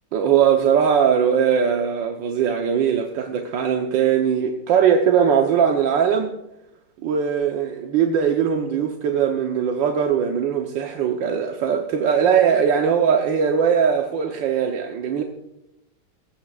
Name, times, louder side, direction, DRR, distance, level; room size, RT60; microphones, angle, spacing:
voice 1, 0.1-6.3 7.0-15.2, right 7 dB, 85° right, 3 dB, 1.7 m, -20 dB
17.5 x 15.0 x 2.4 m, 0.89 s
omnidirectional pair, 1.9 m